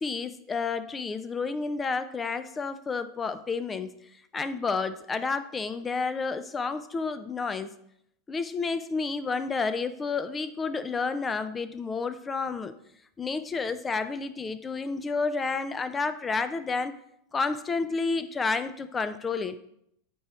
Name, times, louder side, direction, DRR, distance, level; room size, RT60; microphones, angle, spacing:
voice 1, 0.0-3.9 4.3-7.7 8.3-12.7 13.2-16.9 17.3-19.6, left 4 dB, 20° left, 12 dB, 0.5 m, -30 dB
9.2 x 3.1 x 4.8 m, 0.72 s
figure-of-eight pair, 85°, 0 cm